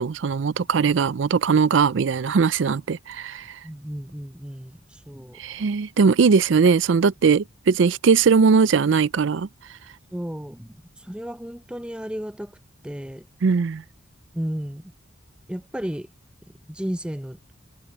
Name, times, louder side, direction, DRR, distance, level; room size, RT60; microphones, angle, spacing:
voice 1, 0.0-3.6 5.4-9.5 13.4-13.8, right 5 dB, 70° right, 0.4 m, -20 dB
voice 2, 3.6-5.4 10.1-12.5 12.8-13.3 14.3-14.9 15.5-16.1 16.7-17.4, equal, 5° right, 0.6 m, -33 dB
head